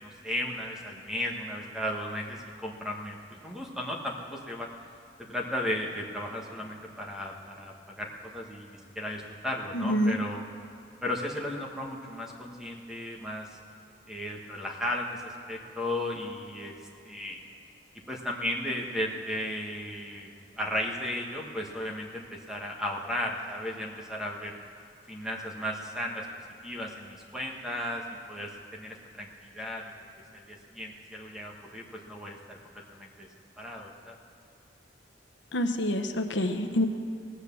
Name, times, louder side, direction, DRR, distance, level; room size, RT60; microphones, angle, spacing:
voice 1, 0.0-3.2 3.4-4.7 5.2-10.4 11.0-13.6 14.1-16.8 17.0-17.4 18.1-20.3 20.6-24.6 25.1-26.3 26.6-29.9 30.3-33.3 33.6-34.2, left 1 dB, 5° right, -1 dB, 1.4 m, -35 dB
voice 2, 9.7-10.2 35.5-36.9, left 1 dB, 85° left, 6 dB, 0.9 m, -27 dB
17.5 x 8.2 x 7.0 m, 2.5 s
head